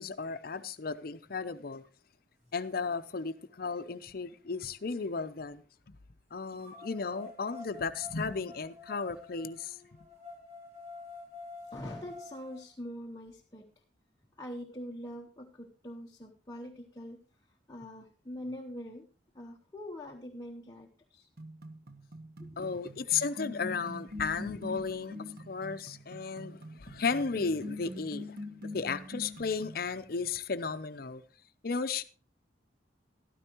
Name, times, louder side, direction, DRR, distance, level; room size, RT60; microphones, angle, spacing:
voice 1, 0.0-1.8 2.5-5.6 6.3-9.8 22.6-25.2 25.5-28.4 28.6-31.2 31.6-32.0, left 5 dB, 55° left, 0.6 m, -34 dB
sound 1, 3.5-5.4 6.6-12.6, left 3 dB, 40° right, 4.5 m, -50 dB
voice 2, 11.7-13.6 14.4-17.2 17.7-19.1 19.3-21.3 22.4-22.8, equal, 20° left, 0.8 m, -44 dB
sound 2, 21.4-29.9, left 2 dB, 55° right, 1.0 m, -44 dB
13.5 x 12.5 x 3.0 m
head